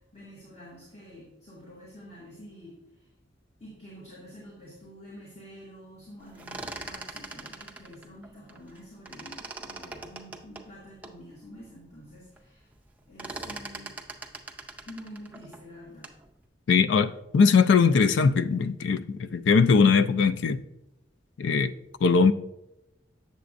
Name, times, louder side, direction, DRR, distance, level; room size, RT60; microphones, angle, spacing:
voice 1, 0.1-3.0 3.6-12.7 13.1-13.9 14.8-16.1, equal, 35° left, 1.7 m, -48 dB
sound 1, 6.2-8.8 9.0-11.2 11.7-11.8 12.0-12.5 12.7-16.3, right 2 dB, 10° right, 0.4 m, -41 dB
voice 2, 16.7-20.6 21.4-21.7 22.0-22.3, left 5 dB, 80° left, 0.4 m, -21 dB
8.2 x 6.9 x 2.5 m
head